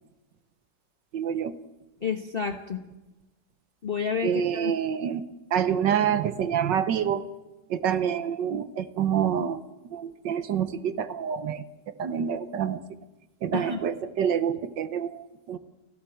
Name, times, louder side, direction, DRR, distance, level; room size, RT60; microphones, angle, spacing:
voice 1, 1.1-1.5 4.2-5.2 5.5-7.2 7.7-9.6 9.9-11.6 12.0-12.8 13.4-15.6, right 8 dB, 75° right, 12 dB, 1.6 m, -27 dB
voice 2, 2.0-2.8 3.8-4.7 13.5-13.8, left 6 dB, 35° left, 5 dB, 1.2 m, -30 dB
29.0 x 13.0 x 7.7 m, 1.1 s
omnidirectional pair, 1.9 m